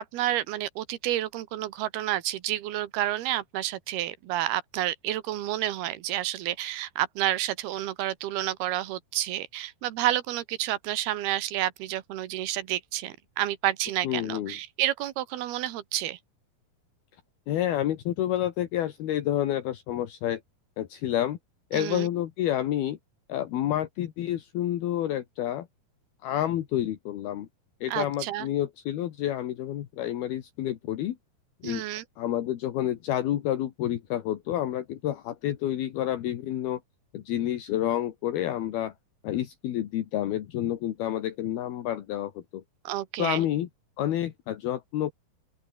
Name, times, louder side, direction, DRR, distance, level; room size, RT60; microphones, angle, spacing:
voice 1, 0.0-16.2 21.7-22.1 27.9-28.5 31.6-32.0 42.8-43.4, right 13 dB, 75° right, 3.1 m, -30 dB
voice 2, 14.0-14.6 17.5-20.4 20.8-21.4 21.7-23.0 23.3-25.7 26.2-27.5 27.8-31.2 31.6-31.8 32.2-36.8 37.1-38.9 39.2-42.6 43.2-43.7 44.0-45.1, left 12 dB, 70° left, 3.4 m, -29 dB
open air
omnidirectional pair, 4.8 m